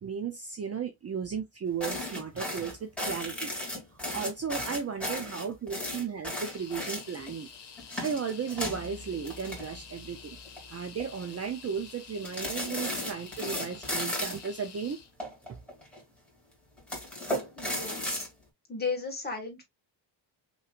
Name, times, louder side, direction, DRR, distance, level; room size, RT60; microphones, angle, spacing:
voice 1, 0.0-3.5 4.1-7.5 8.0-10.4 10.7-15.0, right 6 dB, 30° right, 0.6 m, -35 dB
sound 1, 1.8-7.3 7.8-10.1 10.4-10.6 11.0-11.4 12.2-14.5 15.2-16.0 16.8-18.3, left 1 dB, ahead, 2.3 m, -35 dB
sound 2, 6.4-15.1, left 6 dB, 60° left, 1.6 m, -49 dB
voice 2, 17.6-18.3 18.7-19.6, left 4 dB, 20° left, 1.8 m, -35 dB
5.7 x 3.2 x 2.4 m
wide cardioid pair, 155°, 47 cm